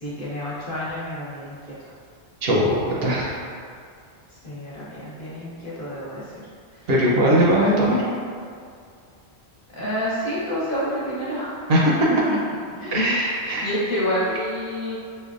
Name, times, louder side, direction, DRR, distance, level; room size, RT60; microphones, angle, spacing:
voice 1, 0.0-1.7 4.4-6.4 6.7-6.9 7.2-8.2 9.7-11.6 12.1-12.4 12.7-13.0 13.6-15.0, equal, 50° left, -9 dB, 1.1 m, -28 dB
voice 2, 2.4-3.5 6.9-8.0 11.7-11.9 12.9-13.7, equal, 65° right, -5 dB, 0.8 m, -20 dB
5.1 x 2.2 x 2.4 m, 2.3 s
omnidirectional pair, 1.1 m